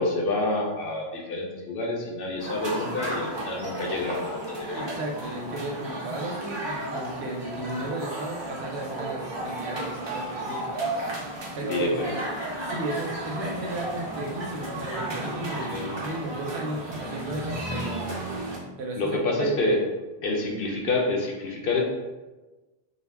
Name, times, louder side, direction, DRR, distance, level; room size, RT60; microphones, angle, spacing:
voice 1, 0.0-4.8 11.7-12.2 15.7-16.0 19.0-19.8 20.2-21.8, left 2 dB, 65° left, 0 dB, 0.7 m, -28 dB
sound 1, 2.4-18.6, right 1 dB, 35° right, 0.4 m, -33 dB
voice 2, 4.8-10.7 11.5-11.9 12.6-18.2 18.8-19.5, right 1 dB, 80° right, 0 dB, 0.9 m, -34 dB
2.5 x 2.2 x 3.3 m, 1.2 s
omnidirectional pair, 1.1 m